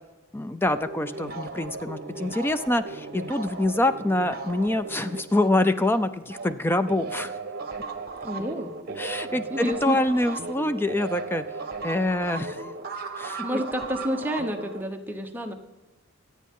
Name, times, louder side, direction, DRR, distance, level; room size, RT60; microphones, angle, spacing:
voice 1, 0.3-7.3 9.0-11.4 11.8-12.7 13.2-13.6, left 1 dB, 10° left, 11 dB, 0.4 m, -25 dB
sound 1, 0.6-6.5 6.8-14.8, right 4 dB, 50° right, 1.1 m, -36 dB
voice 2, 8.2-8.7 9.3-10.4 13.4-15.5, equal, 10° right, 4 dB, 0.9 m, -30 dB
25.0 x 8.5 x 3.7 m, 1.0 s
head